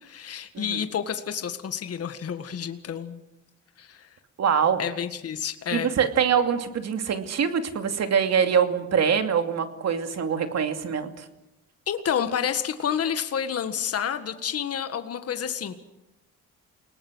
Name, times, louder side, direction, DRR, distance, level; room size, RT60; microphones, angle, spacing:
voice 1, 0.0-3.2 3.8-4.1 4.8-5.9 11.9-15.7, left 8 dB, 50° left, 9 dB, 1.8 m, -29 dB
voice 2, 4.4-4.8 5.7-11.2, right 7 dB, 60° right, 7 dB, 2.7 m, -24 dB
29.0 x 19.5 x 6.4 m, 0.93 s
cardioid pair, 90°, 30 cm